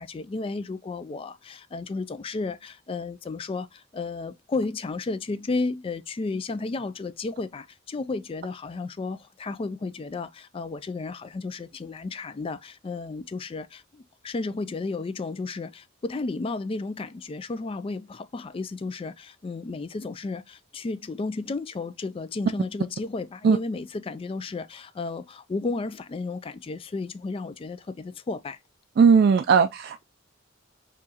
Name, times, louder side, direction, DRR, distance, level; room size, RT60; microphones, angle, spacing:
voice 1, 0.0-28.6, left 3 dB, 30° left, 0.3 m, -33 dB
voice 2, 29.0-30.0, right 6 dB, 55° right, 0.3 m, -18 dB
4.5 x 3.0 x 2.9 m
head